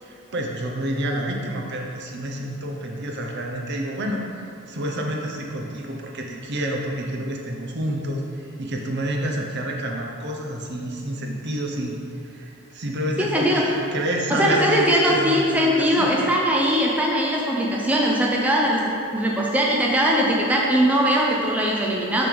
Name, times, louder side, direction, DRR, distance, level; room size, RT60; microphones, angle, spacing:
voice 1, 0.0-4.2 4.7-16.1, right 1 dB, 50° right, 0 dB, 0.7 m, -29 dB
voice 2, 13.2-13.7 14.3-22.3, equal, 5° right, -3 dB, 0.6 m, -20 dB
6.7 x 3.4 x 6.1 m, 2.6 s
head